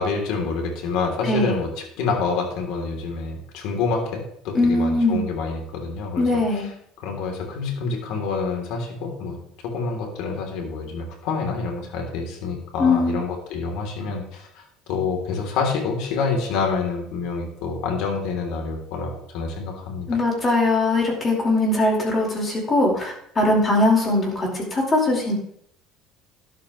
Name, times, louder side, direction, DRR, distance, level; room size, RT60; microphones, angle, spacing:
voice 1, 0.0-1.7 2.0-6.2 7.0-9.4 9.6-20.1, left 4 dB, 70° left, 2 dB, 3.4 m, -27 dB
voice 2, 4.5-5.2 6.2-6.7 12.8-13.2 20.1-25.3, left 2 dB, 25° left, -1 dB, 4.9 m, -21 dB
13.0 x 12.0 x 3.3 m, 0.71 s
cardioid pair, 120°, 0 cm